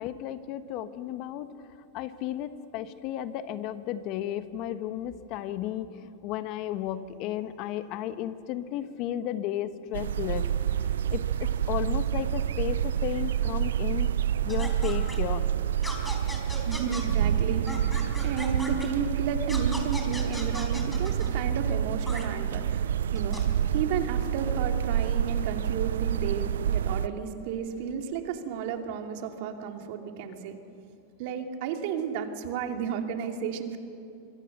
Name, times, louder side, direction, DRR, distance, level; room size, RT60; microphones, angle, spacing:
voice 1, 0.0-1.5 1.9-10.5 11.1-11.2 11.7-14.1 14.4-15.5, left 11 dB, 50° left, 11 dB, 1.3 m, -33 dB
sound 1, 9.9-27.1, right 9 dB, 85° right, 0.5 m, -28 dB
sound 2, 14.5-15.2 15.8-17.0 17.7-18.9 19.5-21.3 22.1-22.2 23.2-23.4, left 1 dB, 5° left, 4.7 m, -38 dB
voice 2, 16.7-30.6 31.2-33.8, right 7 dB, 60° right, 4 dB, 2.6 m, -33 dB
25.5 x 23.0 x 6.7 m, 2.6 s
hypercardioid pair, 115°, 0 cm